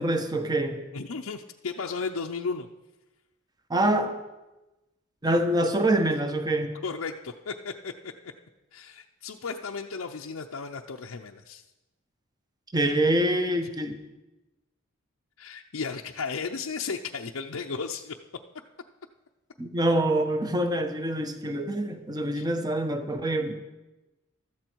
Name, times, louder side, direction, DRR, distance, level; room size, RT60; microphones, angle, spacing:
voice 1, 0.0-0.8 3.7-4.2 5.2-6.7 12.7-13.9 19.6-23.5, right 1 dB, 20° right, 6 dB, 1.2 m, -25 dB
voice 2, 0.9-2.7 6.8-8.1 8.7-11.6 15.4-18.1 22.3-22.5, left 5 dB, 80° left, 1 dB, 0.7 m, -34 dB
15.0 x 13.0 x 4.6 m, 1.0 s
head